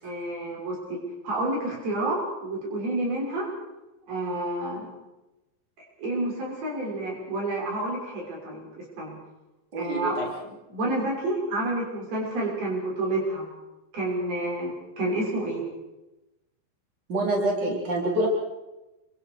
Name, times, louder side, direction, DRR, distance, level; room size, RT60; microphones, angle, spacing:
voice 1, 0.0-3.5 4.1-4.9 6.0-9.2 9.8-10.3 10.7-13.5 13.9-15.6, right 1 dB, 90° right, -3 dB, 8.0 m, -29 dB
voice 2, 9.7-10.3 17.1-18.3, right 1 dB, 30° right, -1 dB, 4.6 m, -26 dB
28.5 x 23.5 x 4.8 m, 1.0 s
omnidirectional pair, 4.2 m